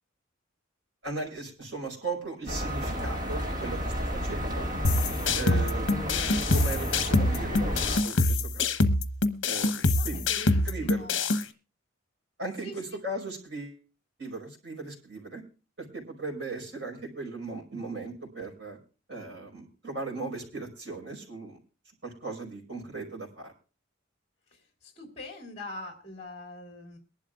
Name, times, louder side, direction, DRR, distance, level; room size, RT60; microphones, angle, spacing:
voice 1, 1.0-4.7 5.3-5.9 6.3-8.7 9.4-10.2 10.6-11.1 12.4-13.8 14.2-15.4 15.8-18.8 19.1-21.6 22.0-23.5, right 3 dB, 65° right, -1 dB, 5.0 m, -37 dB
sound 1, 2.5-8.0, equal, 45° right, 1.9 m, -31 dB
sound 2, 4.8-11.4, left 2 dB, 70° left, 1.0 m, -25 dB
voice 2, 9.9-11.2 12.6-12.8 24.5-27.0, left 2 dB, 35° left, 2 dB, 3.2 m, -43 dB
22.5 x 11.5 x 2.5 m, 0.33 s
head